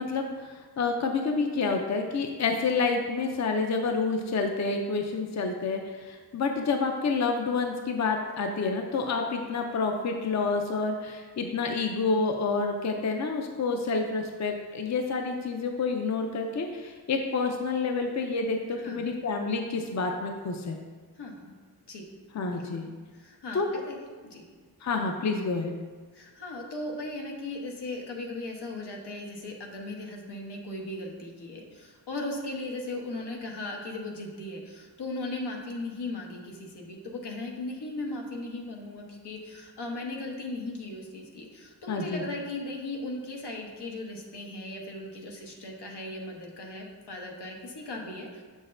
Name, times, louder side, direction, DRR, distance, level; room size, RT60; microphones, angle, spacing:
voice 1, 0.0-20.8 22.3-22.9 23.5-23.7 24.8-25.7 41.9-42.2, left 4 dB, 45° left, 4 dB, 0.5 m, -28 dB
voice 2, 18.7-19.0 21.2-21.5 21.9-22.0 22.5-24.0 24.2-24.4 26.1-48.4, left 2 dB, 85° left, 0 dB, 1.1 m, -37 dB
6.7 x 6.2 x 2.6 m, 1.5 s
wide cardioid pair, 105°, 39 cm